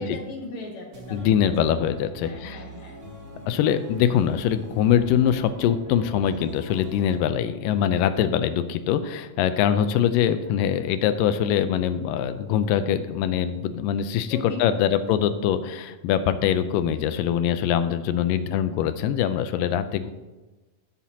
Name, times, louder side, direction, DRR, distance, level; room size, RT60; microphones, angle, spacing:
voice 1, 0.0-1.5 2.2-3.0 14.2-14.9, left 3 dB, 60° left, 0 dB, 2.8 m, -38 dB
sound 1, 0.9-7.2, right 2 dB, 35° right, 1.7 m, -42 dB
voice 2, 1.1-2.6 3.5-20.1, left 9 dB, 90° left, 11 dB, 2.3 m, -23 dB
15.0 x 7.4 x 2.8 m, 1.2 s
omnidirectional pair, 3.9 m